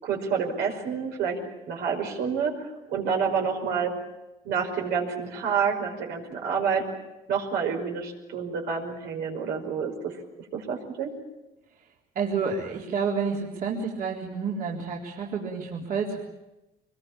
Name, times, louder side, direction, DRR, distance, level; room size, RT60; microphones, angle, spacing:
voice 1, 0.0-1.4 1.7-3.9 4.4-6.8 7.3-10.1 10.5-11.1, right 6 dB, 80° right, 1 dB, 5.5 m, -28 dB
voice 2, 12.2-16.3, right 5 dB, 55° right, -3 dB, 4.0 m, -29 dB
24.5 x 21.5 x 8.8 m, 0.98 s
cardioid pair, 110°, 17 cm